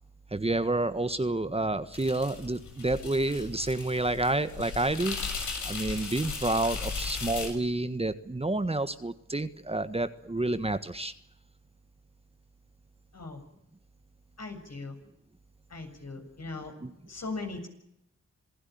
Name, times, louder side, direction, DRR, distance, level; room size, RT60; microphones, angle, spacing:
voice 1, 0.3-5.2 5.6-11.1 16.8-16.9, right 2 dB, 20° right, 11 dB, 1.5 m, -29 dB
sound 1, 1.9-7.5, left 4 dB, 85° left, 7.1 m, -37 dB
voice 2, 14.4-14.9 15.7-16.7 17.1-17.7, left 3 dB, 60° left, 5 dB, 7.6 m, -39 dB
27.0 x 16.5 x 9.5 m, 0.77 s
cardioid pair, 65°, 29 cm